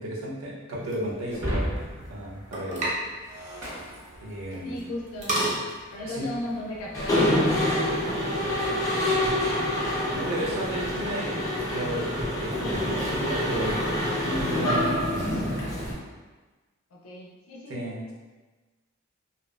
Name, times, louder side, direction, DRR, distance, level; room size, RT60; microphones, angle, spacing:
voice 1, 0.0-1.8 2.1-2.9 4.2-4.9 6.0-6.3 10.1-11.4 11.7-15.5 17.7-18.1, equal, 80° right, -5 dB, 0.6 m, -33 dB
sound 1, 0.8-7.2, right 1 dB, 35° right, 0.5 m, -35 dB
Shatter, 1.3-4.8, equal, 60° right, 1.0 m, -35 dB
voice 2, 4.6-5.4 5.9-9.6 16.9-17.8, left 1 dB, 85° left, -3 dB, 0.4 m, -37 dB
Mechanisms, 6.9-15.9, left 1 dB, 15° left, 0.5 m, -26 dB
2.7 x 2.0 x 2.2 m, 1.3 s
head